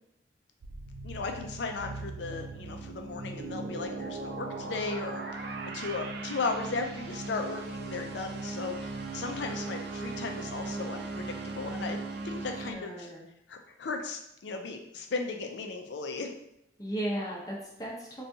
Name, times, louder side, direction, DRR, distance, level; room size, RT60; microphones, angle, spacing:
sound 1, 0.6-12.7, right 3 dB, 60° right, 0.4 m, -38 dB
voice 1, 1.0-12.0 12.2-13.1 13.5-16.3, left 4 dB, 70° left, 5 dB, 0.4 m, -36 dB
voice 2, 12.5-13.2 16.8-18.2, right 1 dB, 20° left, -3 dB, 0.7 m, -36 dB
4.0 x 2.3 x 2.7 m, 0.80 s
head